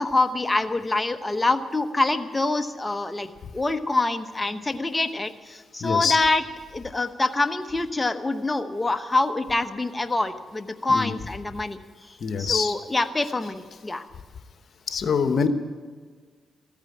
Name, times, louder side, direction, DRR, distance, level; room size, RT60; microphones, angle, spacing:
voice 1, 0.0-3.3 3.5-6.4 6.7-11.8 12.1-14.0, left 2 dB, 20° left, 8 dB, 1.0 m, -25 dB
voice 2, 5.8-6.2 10.9-11.1 12.2-12.7 14.9-15.5, left 6 dB, 65° left, 9 dB, 1.0 m, -24 dB
14.0 x 8.9 x 9.8 m, 1.5 s
cardioid pair, 60°, 0 cm